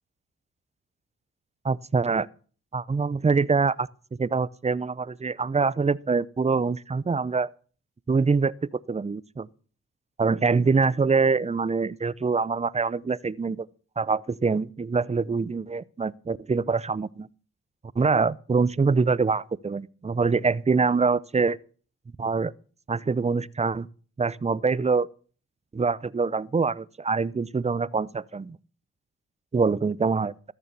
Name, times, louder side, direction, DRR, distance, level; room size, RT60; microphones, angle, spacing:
voice 1, 1.6-2.3 2.7-3.9 4.2-7.5 8.1-9.5 10.2-13.7 14.0-17.3 18.0-21.6 22.2-22.5 22.9-23.9 24.2-25.1 25.7-28.6 29.5-30.3, right 4 dB, 20° right, 0.6 m, -24 dB
14.0 x 6.8 x 6.8 m
supercardioid pair, 50°, 34 cm